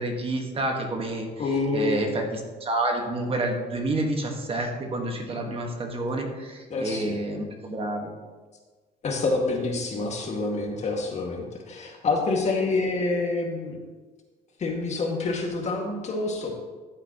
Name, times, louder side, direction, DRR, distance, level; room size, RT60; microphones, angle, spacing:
voice 1, 0.0-1.3 1.7-8.1, right 2 dB, 35° right, 3 dB, 1.6 m, -29 dB
voice 2, 1.4-1.9 6.7-7.2 9.0-13.8 14.6-16.6, left 3 dB, 45° left, 1 dB, 2.0 m, -27 dB
14.5 x 7.7 x 3.0 m, 1.3 s
cardioid pair, 110°, 17 cm